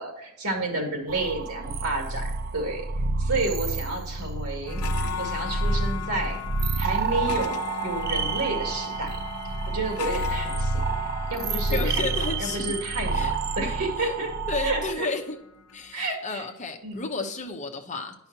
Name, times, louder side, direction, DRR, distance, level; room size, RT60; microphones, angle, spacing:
voice 1, 0.0-2.9 3.2-4.8 5.2-6.4 6.8-9.2 9.7-10.8 11.3-12.1 12.4-15.1 15.9-16.5 16.8-17.1, right 2 dB, 85° right, 2 dB, 2.2 m, -30 dB
sound 1, 1.1-14.9, right 3 dB, 45° right, 0.5 m, -29 dB
sound 2, 4.7-16.0, left 8 dB, 80° left, 0.7 m, -37 dB
Wind instrument woodwind instrument, 7.1-12.1, right 1 dB, 20° right, 2.4 m, -47 dB
voice 2, 11.7-12.7 13.1-13.3 13.7-13.8 14.0-14.1 14.5-15.4 15.7-18.1, left 4 dB, 35° left, 3 dB, 1.0 m, -32 dB
10.5 x 5.6 x 2.8 m, 0.83 s
head